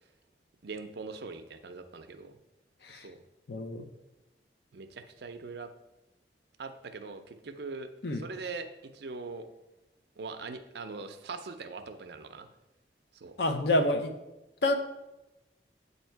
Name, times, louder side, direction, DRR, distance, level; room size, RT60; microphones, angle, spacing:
voice 1, 0.6-2.4 2.9-3.2 4.7-5.7 6.6-9.5 10.2-12.5 13.1-13.3, right 4 dB, 70° right, 9 dB, 0.5 m, -42 dB
voice 2, 3.5-3.9 8.0-8.2 13.4-14.1 14.6-14.8, left 1 dB, 70° left, 7 dB, 0.6 m, -27 dB
8.0 x 2.7 x 4.5 m, 0.97 s
head